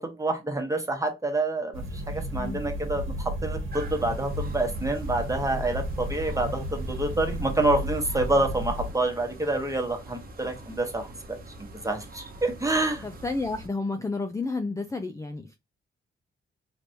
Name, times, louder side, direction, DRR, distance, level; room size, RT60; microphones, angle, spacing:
voice 1, 0.0-13.0, right 2 dB, 15° right, 1.1 m, -28 dB
sound 1, 1.7-8.9, equal, 80° right, 1.2 m, -33 dB
sound 2, 3.7-13.7, right 1 dB, 45° right, 0.9 m, -45 dB
voice 2, 13.0-15.6, left 3 dB, 15° left, 0.4 m, -31 dB
3.3 x 3.0 x 2.6 m
cardioid pair, 90°, 21 cm